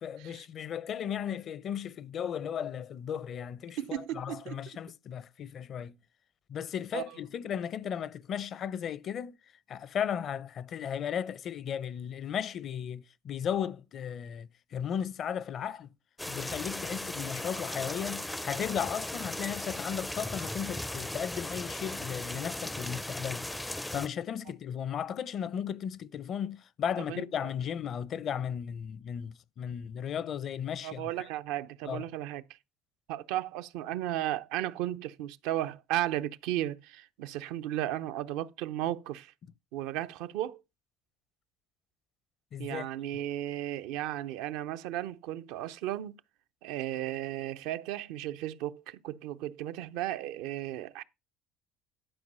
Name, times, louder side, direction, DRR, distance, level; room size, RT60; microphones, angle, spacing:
voice 1, 0.0-6.0 6.5-9.4 9.7-15.9 16.3-23.5 23.9-31.1 31.8-32.0 42.5-42.9, left 8 dB, 55° left, 0.6 m, -35 dB
voice 2, 3.8-4.6 6.9-7.0 27.1-27.5 30.8-32.4 33.1-39.3 39.7-40.6 42.6-46.1 46.6-51.0, right 13 dB, 80° right, 0.6 m, -35 dB
sound 1, 16.2-24.1, left 1 dB, 10° left, 0.4 m, -37 dB
11.5 x 4.7 x 5.4 m
supercardioid pair, 80°, 0 cm